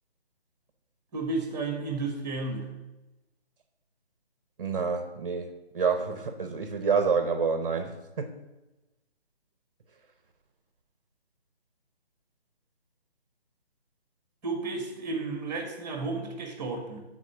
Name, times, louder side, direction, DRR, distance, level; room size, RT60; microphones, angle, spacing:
voice 1, 1.1-2.7 14.4-17.0, right 3 dB, 10° right, 3 dB, 1.5 m, -32 dB
voice 2, 4.6-8.4, right 5 dB, 35° right, 6 dB, 0.9 m, -28 dB
12.5 x 4.2 x 6.8 m, 1.0 s
figure-of-eight pair, 150°, 32 cm